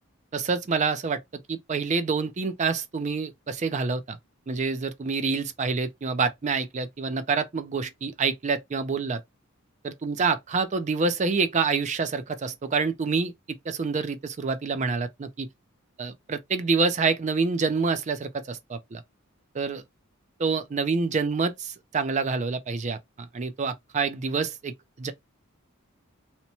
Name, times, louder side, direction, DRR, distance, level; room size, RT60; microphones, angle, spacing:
voice 1, 0.3-4.2 4.5-9.2 9.8-13.3 13.7-15.5 16.0-19.0 19.5-19.8 20.4-25.1, right 4 dB, 35° right, 0.4 m, -27 dB
2.9 x 2.1 x 2.6 m
head